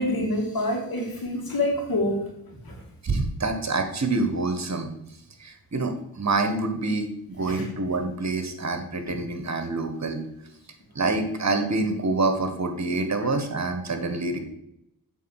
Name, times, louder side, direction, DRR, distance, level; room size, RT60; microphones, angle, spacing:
voice 1, 0.0-2.2 2.6-2.7 7.5-7.7, left 1 dB, 70° left, 1 dB, 2.7 m, -26 dB
voice 2, 3.0-4.9 5.4-10.2 10.9-14.4, right 3 dB, 45° right, 6 dB, 1.5 m, -26 dB
8.2 x 4.1 x 6.5 m, 0.78 s
cardioid pair, 50°, 37 cm